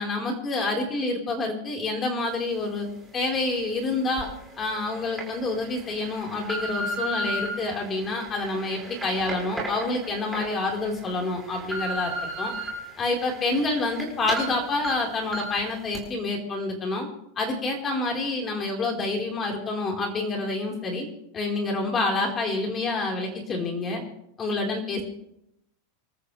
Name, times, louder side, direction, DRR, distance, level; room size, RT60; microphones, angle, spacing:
voice 1, 0.0-2.9 3.1-4.3 4.6-12.5 13.0-17.1 17.4-21.1 21.3-24.0 24.4-25.0, left 2 dB, 20° left, 0 dB, 4.5 m, -28 dB
sound 1, 4.2-4.3 4.9-5.2 5.8-7.5 8.1-10.4 10.9-11.0 11.4-12.7 13.1-14.0 14.3-14.5 14.8-14.9 15.3-15.6 15.9-16.0, right 1 dB, 5° right, 5.5 m, -33 dB
26.5 x 13.5 x 3.4 m, 0.79 s
supercardioid pair, 150°, 0 cm